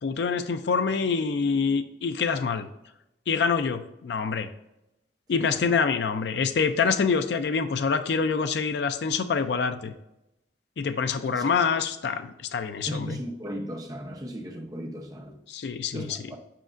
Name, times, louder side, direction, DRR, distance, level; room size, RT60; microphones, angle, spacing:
voice 1, 0.0-2.7 3.3-4.5 5.3-9.9 10.8-13.2 15.5-16.2, left 5 dB, 75° left, 0.4 m, -26 dB
voice 2, 12.8-15.4 15.9-16.4, equal, 20° right, 0.7 m, -36 dB
7.5 x 5.0 x 2.5 m
head